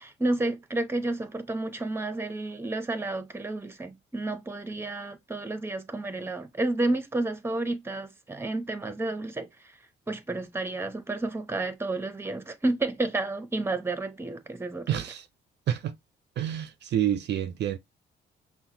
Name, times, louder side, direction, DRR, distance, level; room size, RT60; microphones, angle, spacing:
voice 1, 0.0-9.5 10.1-14.9, right 2 dB, 10° right, 0.8 m, -31 dB
voice 2, 14.9-15.3 15.7-15.9 16.4-17.8, right 10 dB, 60° right, 0.5 m, -28 dB
5.7 x 2.2 x 2.8 m
cardioid pair, 90°, 20 cm